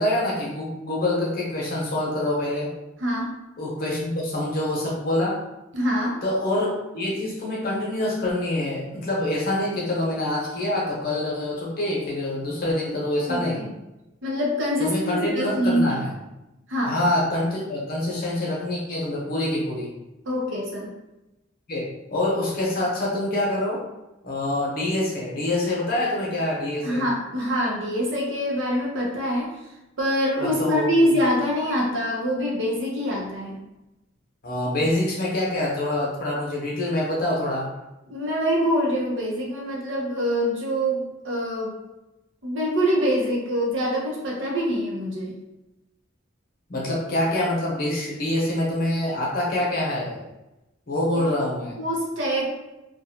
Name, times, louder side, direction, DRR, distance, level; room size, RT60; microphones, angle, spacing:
voice 1, 0.0-2.7 3.6-5.4 6.2-13.6 14.8-16.1 16.8-19.9 21.7-23.8 24.2-27.0 30.4-30.8 34.4-37.7 46.7-50.2 50.9-51.8, left 1 dB, 50° left, -4 dB, 0.8 m, -25 dB
voice 2, 3.0-3.3 5.7-6.2 13.3-13.7 14.2-16.0 16.7-17.0 20.3-20.9 26.8-29.6 30.0-33.6 38.1-41.8 42.4-45.4 51.1-51.3 51.8-52.6, equal, 70° right, -2 dB, 0.7 m, -25 dB
2.6 x 2.3 x 2.7 m, 0.97 s
head